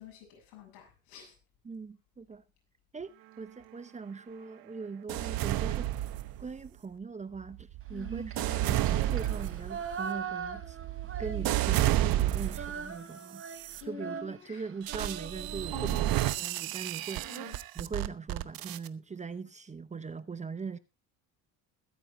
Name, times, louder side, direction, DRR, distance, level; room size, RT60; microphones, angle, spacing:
voice 1, 0.0-1.4 7.9-8.1 13.8-14.6 15.7-16.1 17.3-17.6, left 8 dB, 85° left, 7.5 m, -47 dB
voice 2, 1.6-2.4 2.9-5.9 6.4-10.8 11.2-20.8, right 5 dB, 20° right, 0.8 m, -41 dB
sound 1, 5.1-6.7 7.3-12.8 13.4-13.8 14.9-18.9, right 14 dB, 65° right, 1.0 m, -31 dB
Female singing, 8.0-11.9 12.1-16.4, right 6 dB, 35° right, 4.1 m, -41 dB
21.5 x 9.6 x 2.7 m
cardioid pair, 115°, 39 cm